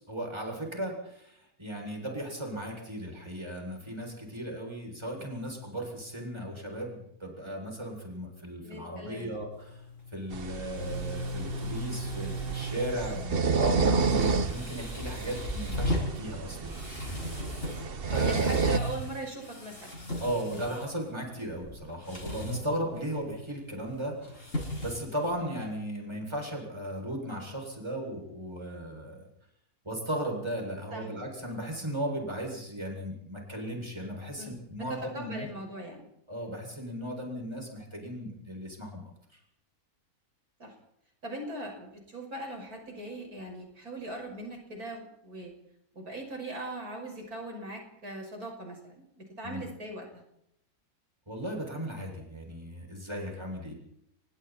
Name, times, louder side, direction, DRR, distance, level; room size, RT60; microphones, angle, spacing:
voice 1, 0.0-9.8 10.1-16.8 18.1-18.6 20.2-29.3 29.8-35.5 36.3-39.1 49.4-49.6 51.3-53.7, equal, 15° right, 0 dB, 7.5 m, -36 dB
voice 2, 8.6-9.3 18.1-19.9 30.9-31.0 34.4-34.5 34.9-36.1 40.6-40.7 41.2-45.5 45.9-50.1, right 1 dB, 75° right, 2 dB, 6.4 m, -40 dB
sound 1, 9.5-25.7, equal, 55° left, 8.1 m, -38 dB
sound 2, 10.3-18.8, right 5 dB, 40° right, 1.1 m, -30 dB
29.0 x 23.5 x 4.5 m, 0.76 s
omnidirectional pair, 1.6 m